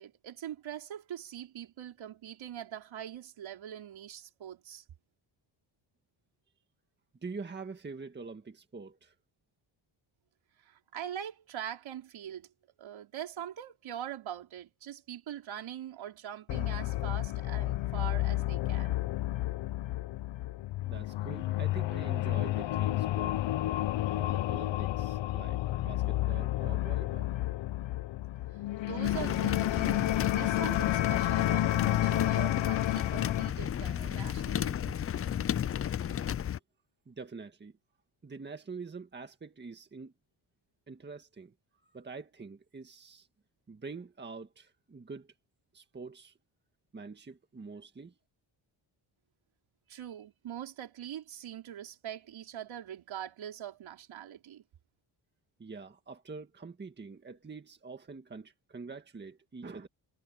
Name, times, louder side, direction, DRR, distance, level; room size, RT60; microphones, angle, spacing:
voice 1, 0.0-4.8 10.6-12.5 12.8-19.0 28.5-28.6 28.9-34.8 49.9-54.6, right 10 dB, 70° right, 4.7 m, -43 dB
voice 2, 7.2-9.1 20.9-23.5 24.2-27.3 37.1-37.8 38.2-40.1 40.9-41.5 41.8-43.3 43.7-45.3 45.7-46.4 46.9-48.2 55.6-59.9, right 4 dB, 20° right, 1.8 m, -45 dB
sound 1, 16.5-33.5, left 15 dB, 65° left, 0.8 m, -31 dB
sound 2, 29.0-36.6, left 9 dB, 30° left, 0.4 m, -33 dB
cardioid pair, 150°, 49 cm